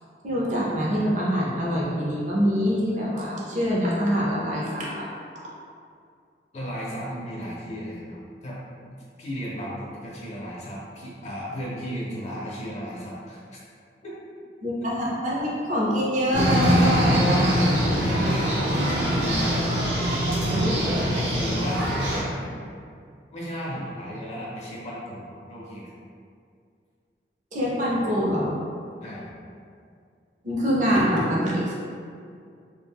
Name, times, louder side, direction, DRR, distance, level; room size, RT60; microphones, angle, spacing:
voice 1, 0.2-5.1 5.3-5.4 14.6-17.6 27.5-28.6 30.4-31.8, equal, 45° right, -6 dB, 0.5 m, -24 dB
voice 2, 6.5-8.6 9.2-13.6 14.0-14.1 18.0-20.0 20.4-22.5 23.3-25.9 29.0-29.3, equal, 40° left, -5 dB, 0.5 m, -35 dB
sound 1, 16.3-22.2, equal, 85° right, 0.7 m, -23 dB
2.4 x 2.1 x 3.4 m, 2.3 s
head